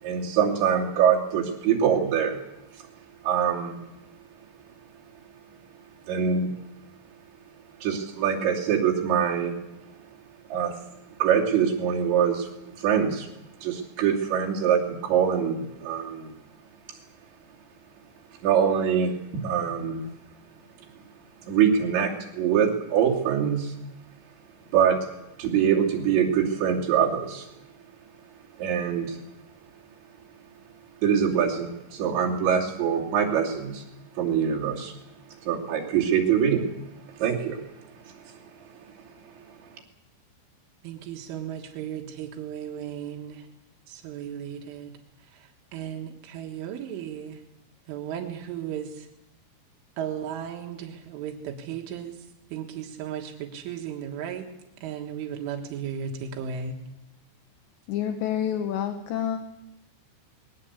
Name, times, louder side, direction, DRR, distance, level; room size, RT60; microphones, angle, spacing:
voice 1, 0.0-2.4 3.2-3.8 6.1-6.5 7.8-9.6 10.5-10.7 11.2-12.5 12.8-13.3 13.6-16.3 18.4-20.0 21.4-23.7 24.7-25.0 25.4-27.5 28.6-29.2 31.0-33.8 34.2-34.9 35.5-36.7 37.2-37.7, right 8 dB, 70° right, -1 dB, 5.1 m, -24 dB
voice 2, 40.8-43.5 43.9-44.9 45.2-47.4 47.9-49.1 50.0-54.5 54.8-56.8, right 8 dB, 90° right, 2 dB, 4.1 m, -35 dB
voice 3, 57.9-59.5, left 9 dB, 75° left, 7 dB, 3.2 m, -28 dB
21.5 x 19.5 x 8.3 m, 0.87 s
omnidirectional pair, 5.4 m